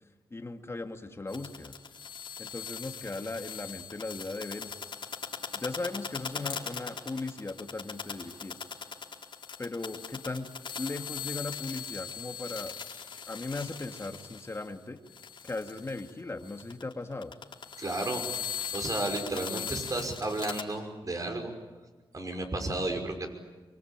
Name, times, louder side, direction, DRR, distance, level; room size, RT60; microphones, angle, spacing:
voice 1, 0.3-1.8 2.4-4.7 5.5-8.6 9.6-10.5 10.8-12.7 13.3-15.0 15.4-17.3, left 3 dB, 30° left, 5 dB, 2.4 m, -37 dB
sound 1, 1.3-14.7 15.1-16.1 16.4-20.6, left 7 dB, 65° left, 4.5 m, -40 dB
voice 2, 17.8-18.2 18.7-21.5 22.1-23.3, right 2 dB, 40° right, 5 dB, 5.7 m, -32 dB
25.0 x 24.5 x 9.0 m, 1.2 s
cardioid pair, 80°, 9 cm